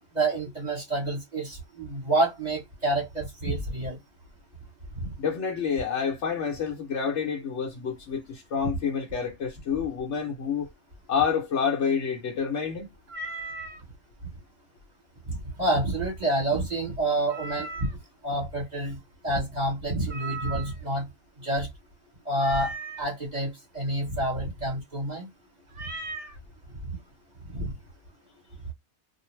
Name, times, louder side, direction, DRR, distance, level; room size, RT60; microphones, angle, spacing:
voice 1, 0.1-4.0 5.0-5.1 15.2-17.9 18.2-19.0 19.2-21.1 21.4-21.7 22.2-22.7 23.0-25.3 26.9-27.0 27.5-27.7, right 1 dB, 30° right, 1.1 m, -28 dB
voice 2, 5.2-10.7 11.1-12.9, left 6 dB, 60° left, 0.9 m, -28 dB
Meow, 13.1-13.8 17.3-18.1 20.1-20.9 22.4-23.1 25.7-26.4, right 3 dB, 55° right, 0.5 m, -37 dB
2.5 x 2.0 x 3.1 m
omnidirectional pair, 1.5 m